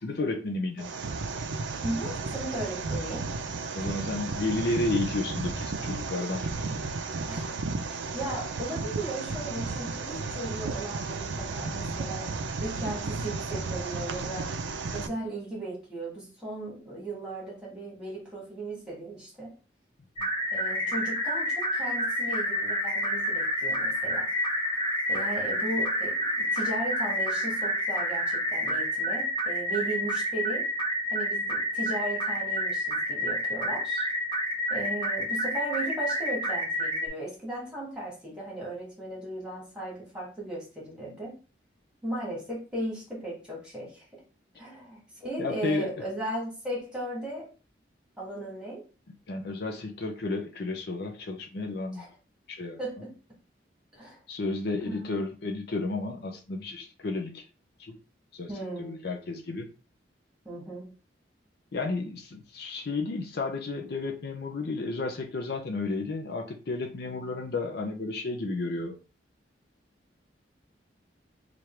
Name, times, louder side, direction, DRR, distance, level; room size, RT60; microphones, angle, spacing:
voice 1, 0.0-0.9 3.7-6.4 45.4-45.9 49.3-52.1 52.5-52.8 54.3-57.5 57.8-58.0 58.3-58.5 58.8-59.7 61.7-69.0, left 3 dB, 60° left, 3 dB, 0.6 m, -32 dB
sound 1, 0.8-15.1, right 3 dB, 90° right, 0.5 m, -33 dB
voice 2, 1.8-3.3 7.3-12.3 12.6-14.5 14.9-19.5 20.5-24.3 25.1-30.7 31.1-34.1 34.7-41.4 42.0-44.2 44.6-47.5 48.2-48.8 51.9-52.1 52.8-53.2 53.9-54.2 54.8-55.2 58.5-59.1 60.4-60.9, right 1 dB, 5° right, -4 dB, 1.6 m, -36 dB
sound 2, 20.2-37.1, equal, 30° left, 1.0 m, -29 dB
3.2 x 2.5 x 4.4 m, 0.34 s
head